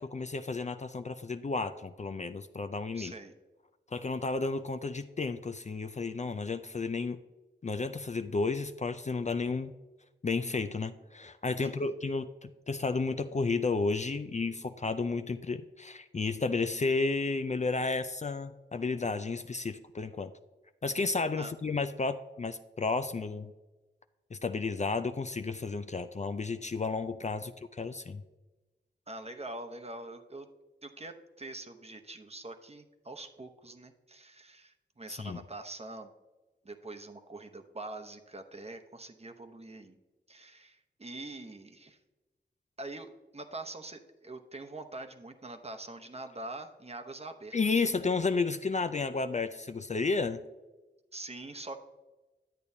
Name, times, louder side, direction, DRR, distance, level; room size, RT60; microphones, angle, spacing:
voice 1, 0.0-3.1 3.9-7.2 7.6-9.7 10.2-20.3 20.8-23.5 24.3-28.2 35.1-35.4 47.5-50.4, left 4 dB, 35° left, 9 dB, 0.4 m, -32 dB
voice 2, 2.9-3.3 11.6-11.9 21.4-21.5 29.1-30.5 30.8-36.1 36.6-40.0 40.3-42.0 42.8-43.1 43.3-47.9 51.1-51.8, right 2 dB, 30° right, 5 dB, 0.8 m, -44 dB
10.5 x 8.4 x 2.7 m, 1.2 s
cardioid pair, 50°, 20 cm